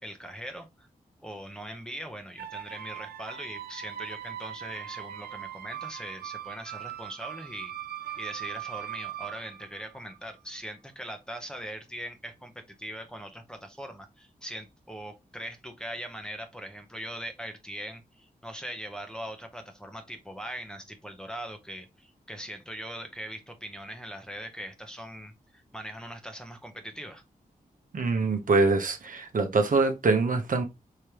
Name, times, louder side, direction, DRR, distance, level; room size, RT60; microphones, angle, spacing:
voice 1, 0.0-0.9 1.2-7.7 8.2-27.2, equal, 5° left, 0.9 m, -41 dB
sound 1, 2.4-10.3, right 11 dB, 90° right, 0.7 m, -40 dB
voice 2, 27.9-30.6, right 3 dB, 60° right, 0.9 m, -24 dB
4.9 x 3.3 x 2.9 m
wide cardioid pair, 75°, 15 cm